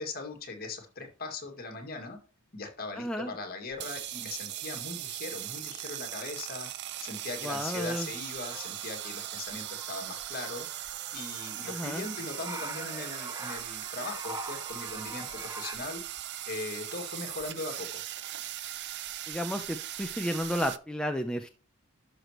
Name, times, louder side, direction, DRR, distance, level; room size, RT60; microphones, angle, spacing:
voice 1, 0.0-2.2 2.5-6.7 7.0-10.7 11.1-16.0 16.5-18.0, left 3 dB, 45° left, 3 dB, 2.2 m, -39 dB
voice 2, 3.0-3.3 7.4-8.1 11.7-12.0 19.3-21.5, equal, 5° left, 5 dB, 0.5 m, -32 dB
sound 1, 3.7-20.8, right 13 dB, 55° right, 0.5 m, -39 dB
sound 2, 8.5-15.7, right 1 dB, 15° right, 1.0 m, -44 dB
12.0 x 6.1 x 3.0 m, 0.34 s
head